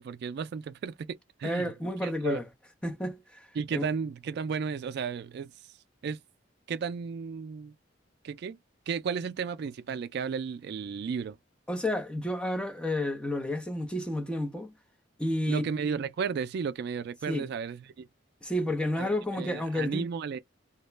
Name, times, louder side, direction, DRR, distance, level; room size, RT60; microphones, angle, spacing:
voice 1, 0.0-1.7 2.0-2.4 3.6-5.5 6.0-6.2 6.7-7.7 8.2-8.6 8.9-11.4 15.5-18.1 19.0-20.4, right 6 dB, 60° right, 0.3 m, -34 dB
voice 2, 1.4-2.5 2.8-3.5 3.7-3.9 11.7-14.7 15.2-15.6 17.3-17.5 18.4-20.1, left 1 dB, 5° left, 0.6 m, -31 dB
2.3 x 2.1 x 3.1 m
head